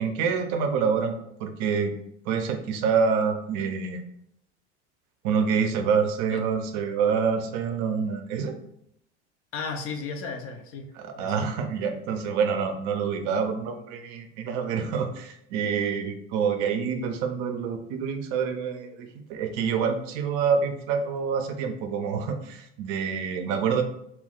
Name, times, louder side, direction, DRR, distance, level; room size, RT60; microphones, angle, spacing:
voice 1, 0.0-1.9 2.3-4.0 5.2-8.5 11.0-23.8, right 6 dB, 60° right, 6 dB, 0.5 m, -27 dB
voice 2, 9.5-11.5, left 4 dB, 40° left, 4 dB, 0.5 m, -35 dB
2.3 x 2.3 x 3.6 m, 0.74 s
hypercardioid pair, 90°, 33 cm